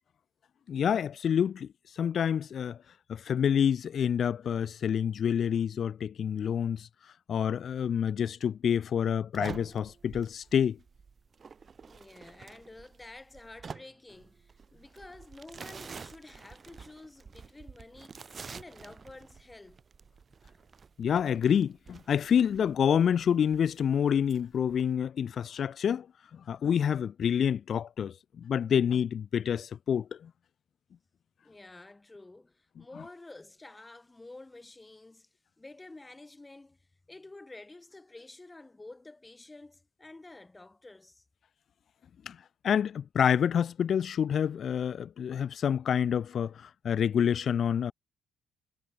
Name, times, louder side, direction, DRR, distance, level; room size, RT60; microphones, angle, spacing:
voice 1, 0.7-1.7 1.9-2.8 3.1-6.9 7.3-10.8 21.0-26.1 26.3-30.3 42.3-42.4 42.6-47.9, left 8 dB, 50° left, 0.7 m, -28 dB
sound 1, 9.3-25.0, right 5 dB, 35° right, 1.9 m, -48 dB
voice 2, 11.8-19.8 31.4-41.2, left 2 dB, 15° left, 5.9 m, -50 dB
cardioid pair, 130°, 0 cm